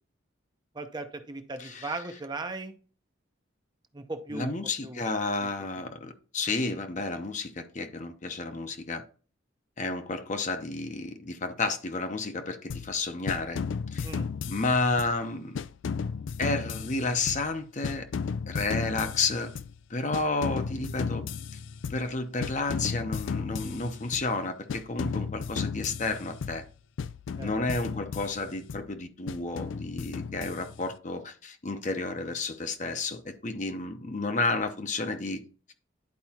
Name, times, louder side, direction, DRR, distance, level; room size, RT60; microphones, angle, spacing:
voice 1, 0.7-2.8 3.9-4.6 4.8-5.1 14.0-14.3 27.4-27.5, right 3 dB, 20° right, 0.6 m, -37 dB
voice 2, 1.6-1.9 4.3-9.0 9.8-13.6 13.9-14.1 14.5-15.6 16.4-18.1 18.5-19.5 19.9-21.2 21.9-26.6 27.4-35.4, left 3 dB, 40° left, 0.8 m, -31 dB
sound 1, 12.7-13.0 13.3-15.2 15.5-17.6 17.8-19.8 20.1-22.1 22.4-24.4 24.7-26.7 27.0-28.9 29.3-30.9, left 5 dB, 75° left, 0.4 m, -35 dB
10.5 x 4.7 x 2.9 m
head